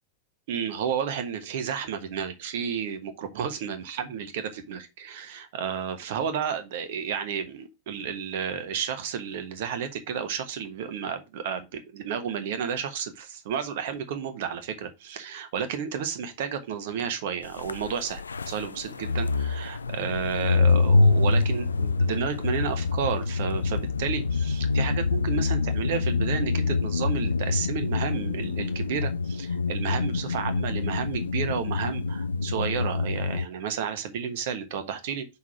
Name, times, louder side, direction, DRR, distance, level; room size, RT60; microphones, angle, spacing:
voice 1, 0.5-35.3, right 7 dB, 55° right, 1.2 m, -32 dB
sound 1, 17.6-33.5, left 4 dB, 75° left, 0.4 m, -26 dB
5.5 x 4.9 x 5.7 m
figure-of-eight pair, 90°, 0 cm